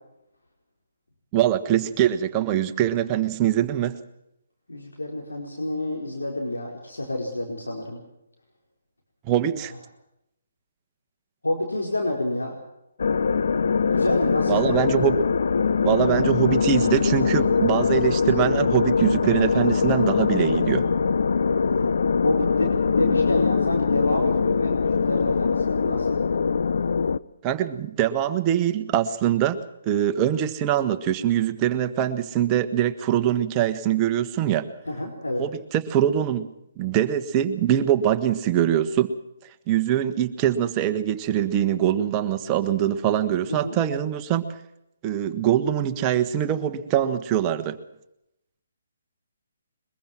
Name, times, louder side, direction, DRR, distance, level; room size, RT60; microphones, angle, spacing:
voice 1, 1.3-4.0 9.3-9.7 14.5-15.2 15.8-20.8 27.4-29.6 29.8-34.7 35.4-36.5 36.8-39.1 39.7-44.4 45.0-47.8, right 10 dB, 25° right, 8 dB, 1.5 m, -23 dB
voice 2, 4.7-8.0 11.4-12.5 13.9-14.6 21.6-21.9 22.2-26.2 34.9-35.4 43.5-43.8, left 1 dB, 85° left, 0 dB, 4.6 m, -28 dB
sound 1, 13.0-27.2, left 5 dB, 65° left, 0.7 m, -22 dB
22.5 x 22.0 x 6.0 m, 0.83 s
figure-of-eight pair, 140°, 0 cm